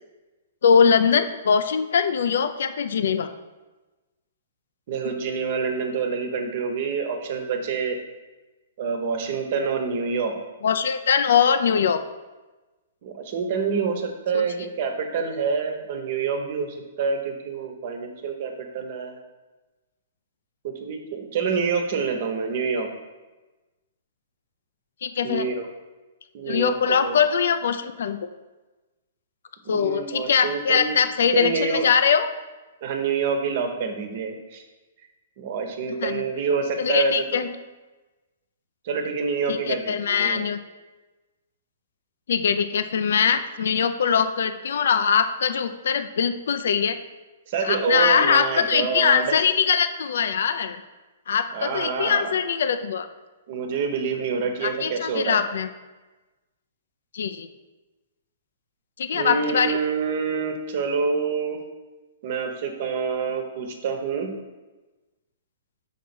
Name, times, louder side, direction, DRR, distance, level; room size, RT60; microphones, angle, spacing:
voice 1, 0.6-3.3 5.0-5.1 10.6-12.0 14.3-14.4 25.0-25.5 26.5-28.2 29.7-32.3 36.0-36.2 36.8-37.5 39.5-40.6 42.3-47.0 47.6-50.8 51.3-53.1 54.6-55.7 57.1-57.5 59.0-59.8, left 7 dB, 75° left, 9 dB, 0.5 m, -22 dB
voice 2, 4.9-8.0 8.8-10.3 13.0-19.2 20.6-22.9 25.2-25.7 26.3-27.2 29.6-31.0 31.3-31.9 32.8-34.6 35.4-37.4 38.8-40.4 47.5-49.4 51.5-52.3 53.5-55.4 59.1-61.6 62.2-64.3, right 5 dB, 50° right, 4 dB, 1.1 m, -27 dB
5.9 x 4.1 x 6.1 m, 1.2 s
hypercardioid pair, 140°, 0 cm